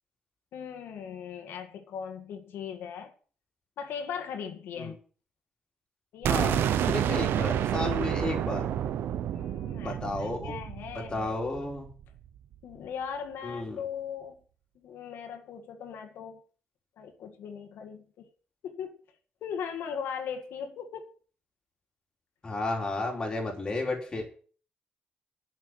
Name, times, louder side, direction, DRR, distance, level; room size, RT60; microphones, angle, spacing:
voice 1, 0.5-3.1 3.8-5.0 6.1-6.4 6.9-7.1 9.3-11.4 12.6-14.4 14.8-16.4 17.0-18.3 18.6-19.0 19.4-21.1, left 7 dB, 90° left, 1.8 m, -39 dB
sound 1, 6.2-12.0, right 10 dB, 80° right, 0.8 m, -29 dB
voice 2, 6.3-8.7 9.7-10.6 11.1-11.9 13.4-13.8 22.4-24.2, left 2 dB, 20° left, 3.4 m, -33 dB
11.0 x 6.1 x 9.0 m
cardioid pair, 175°, 4 cm